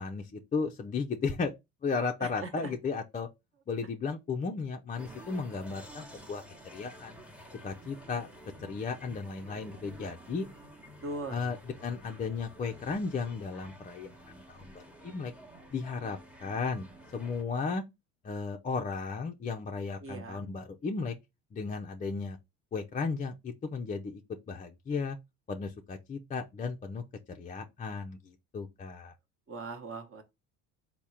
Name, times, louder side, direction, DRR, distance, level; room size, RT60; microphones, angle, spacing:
voice 1, 0.0-1.5 1.8-3.3 3.7-6.4 6.7-7.2 7.6-8.3 8.6-10.5 11.3-15.3 15.7-16.9 17.1-17.8 18.2-21.1 21.5-22.4 22.7-24.2 24.5-25.2 25.5-29.1, left 4 dB, 20° left, 0.4 m, -35 dB
voice 2, 2.2-2.7 11.0-11.4 20.0-20.4 29.5-30.2, right 3 dB, 35° right, 1.0 m, -39 dB
sound 1, 5.0-17.4, equal, 5° right, 0.9 m, -51 dB
3.5 x 2.1 x 4.1 m
supercardioid pair, 80°, 39 cm